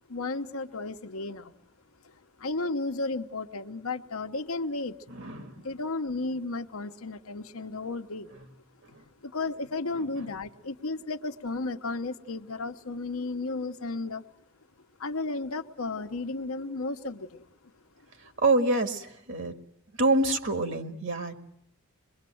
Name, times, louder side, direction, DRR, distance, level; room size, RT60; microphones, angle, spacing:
voice 1, 0.1-1.5 2.4-5.0 5.5-8.3 9.2-14.2 15.0-17.5, left 3 dB, 80° left, 7 dB, 1.0 m, -33 dB
voice 2, 5.1-5.7 10.2-10.3 18.4-19.5 20.0-21.4, right 2 dB, 60° right, 7 dB, 1.9 m, -26 dB
24.0 x 21.5 x 7.8 m, 0.71 s
head